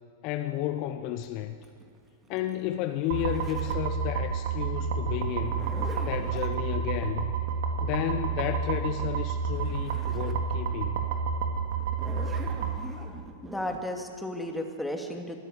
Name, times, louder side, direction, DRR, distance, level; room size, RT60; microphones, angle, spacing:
voice 1, 0.2-1.5 2.3-5.7 6.0-7.3 7.8-11.0, left 12 dB, 45° left, 9 dB, 1.0 m, -32 dB
Zipper (clothing), 1.2-3.9 5.3-6.5 9.1-9.2 9.5-10.5 10.9-11.0 11.8-13.8, right 4 dB, 20° right, 2.7 m, -44 dB
sound 1, 3.1-12.8, right 6 dB, 60° right, 2.7 m, -30 dB
voice 2, 13.4-15.4, left 1 dB, 5° left, 3 dB, 2.8 m, -34 dB
25.5 x 14.0 x 8.1 m, 2.4 s
figure-of-eight pair, 100°, 0 cm